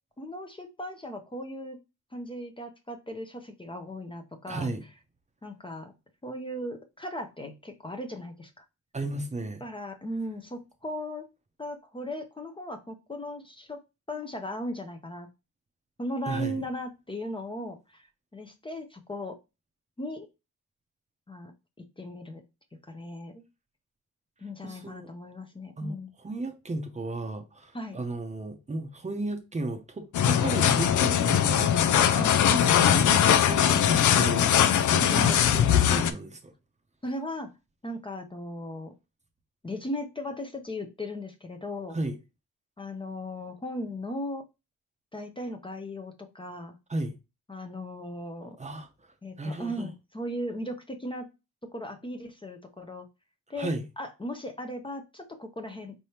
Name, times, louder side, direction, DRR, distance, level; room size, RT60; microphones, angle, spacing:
voice 1, 0.2-1.8 2.1-4.7 5.4-5.9 6.2-8.6 9.6-11.3 11.6-13.8 14.1-15.3 16.0-18.1 18.3-19.4 20.0-20.3 21.3-21.5 22.0-22.4 22.9-23.5 24.4-26.1 27.7-28.0 32.1-32.5 35.2-35.4 37.0-37.5 37.8-38.9 39.6-42.0 42.8-44.4 45.1-46.7 47.5-48.6 49.2-51.3 51.7-53.1 53.5-55.9, left 1 dB, 15° left, 0.6 m, -37 dB
voice 2, 4.5-4.8 8.9-9.6 16.3-16.6 24.6-25.1 25.8-32.2 32.5-36.5 41.9-42.2 46.9-47.2 48.6-48.9 49.4-49.9 53.6-53.9, right 2 dB, 25° right, 0.7 m, -34 dB
sound 1, 30.1-36.1, left 9 dB, 70° left, 0.5 m, -21 dB
4.3 x 3.4 x 2.8 m
cardioid pair, 110°, 31 cm